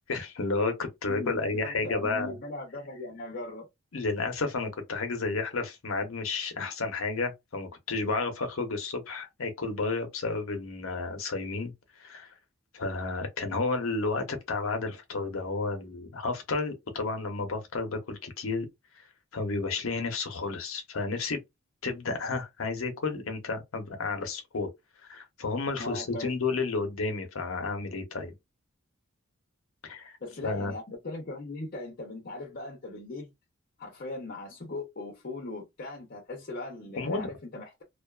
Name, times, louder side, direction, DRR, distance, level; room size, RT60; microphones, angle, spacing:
voice 1, 0.1-2.3 3.9-11.7 12.0-12.3 12.7-18.7 19.0-19.1 19.3-21.4 21.8-24.7 25.1-28.3 29.8-30.1 30.4-30.7 37.0-37.3, left 3 dB, 80° left, 0.7 m, -31 dB
voice 2, 1.0-3.7 25.8-26.3 30.2-33.3 33.8-37.8, left 2 dB, 45° left, 0.7 m, -39 dB
2.4 x 2.3 x 2.3 m
head